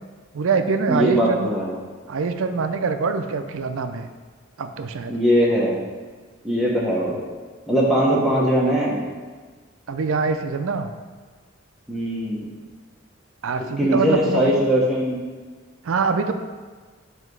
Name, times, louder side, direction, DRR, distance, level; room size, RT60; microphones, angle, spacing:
voice 1, 0.3-1.5 2.1-4.1 4.6-5.2 9.9-10.9 13.4-14.6 15.8-16.3, right 4 dB, 80° right, 8 dB, 0.4 m, -24 dB
voice 2, 0.9-1.7 5.1-5.8 6.4-7.2 7.7-9.0 11.9-12.5 13.8-15.2, equal, ahead, -6 dB, 1.0 m, -20 dB
7.5 x 3.0 x 4.6 m, 1.4 s
head